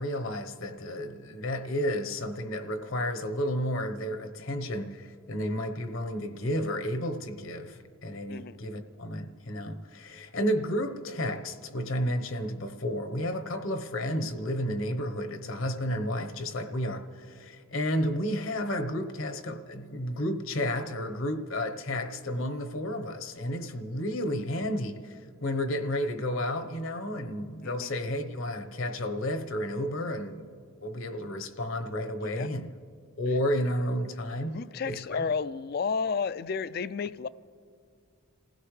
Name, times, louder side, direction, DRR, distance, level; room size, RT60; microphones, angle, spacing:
voice 1, 0.0-30.5 30.8-32.7 33.2-35.3, equal, 70° left, 1.0 m, -32 dB
voice 2, 34.5-37.3, left 5 dB, 45° left, 0.3 m, -32 dB
27.5 x 16.0 x 3.2 m
head